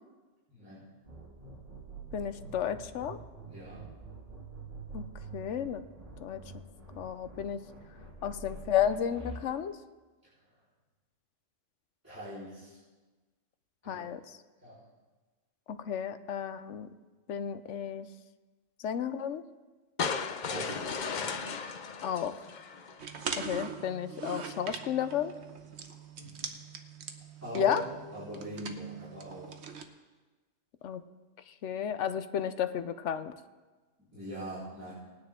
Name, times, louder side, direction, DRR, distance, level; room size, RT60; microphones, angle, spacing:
voice 1, 0.5-0.9 3.5-3.8 10.2-10.3 12.0-12.8 13.8-14.1 14.6-14.8 20.4-20.8 21.1-21.4 26.1-26.5 27.4-27.7 28.1-29.6 34.0-34.9, equal, 10° right, -14 dB, 4.2 m, -41 dB
sound 1, 1.0-9.4, right 3 dB, 30° right, 2.2 m, -46 dB
voice 2, 2.1-3.2 4.9-5.0 5.3-5.8 6.2-6.4 7.0-7.6 8.2-9.8 13.9-14.2 15.7-16.9 17.3-18.1 18.8-19.4 22.0-22.3 23.4-25.3 27.5-27.8 30.8-31.0 31.6-33.3, left 9 dB, 80° left, 11 dB, 1.0 m, -32 dB
sound 2, 20.0-23.2, left 5 dB, 45° left, 0.7 m, -35 dB
sound 3, 23.0-29.8, right 6 dB, 70° right, 1.2 m, -42 dB
19.0 x 9.9 x 3.7 m, 1.3 s
omnidirectional pair, 1.2 m